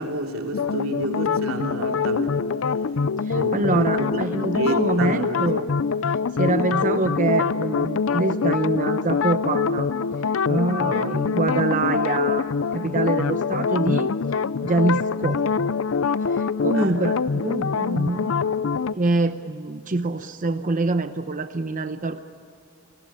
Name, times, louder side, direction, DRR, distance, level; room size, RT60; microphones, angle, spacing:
voice 1, 0.0-2.4 3.3-4.2 4.5-5.4 16.7-17.0, right 1 dB, 90° right, 2 dB, 3.1 m, -29 dB
sound 1, 0.5-18.9, left 5 dB, 70° left, 0.5 m, -24 dB
voice 2, 3.2-5.7 6.4-9.9 10.5-12.5 12.7-14.1 14.6-15.5 16.2-18.5 19.0-22.2, right 3 dB, 40° right, 9 dB, 0.8 m, -25 dB
29.0 x 20.0 x 8.8 m, 2.6 s
head